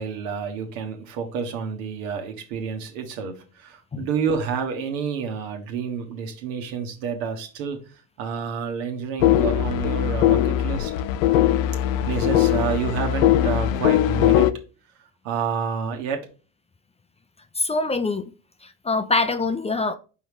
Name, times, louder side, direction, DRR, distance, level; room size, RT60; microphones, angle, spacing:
voice 1, 0.0-7.8 8.2-10.9 11.9-14.5 15.2-16.3, right 6 dB, 75° right, 1.4 m, -29 dB
sound 1, 9.2-14.5, left 12 dB, 85° left, 0.5 m, -20 dB
voice 2, 17.6-18.3 18.6-19.9, left 3 dB, 15° left, 0.5 m, -24 dB
5.3 x 3.7 x 4.8 m
hypercardioid pair, 80°, 39 cm